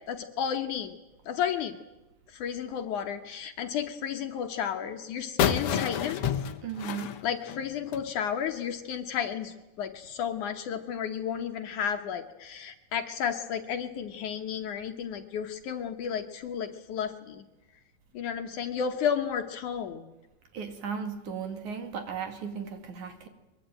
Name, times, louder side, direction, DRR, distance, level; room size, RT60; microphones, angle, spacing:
voice 1, 0.1-0.9 1.3-1.8 2.3-6.3 7.2-17.4 18.1-20.1, left 8 dB, 65° left, 6 dB, 2.2 m, -32 dB
sound 1, 5.4-8.1, left 8 dB, 80° left, 1.2 m, -29 dB
voice 2, 6.6-7.2 20.5-23.3, right 6 dB, 55° right, 7 dB, 3.5 m, -36 dB
23.0 x 22.5 x 9.0 m, 1.0 s
omnidirectional pair, 4.3 m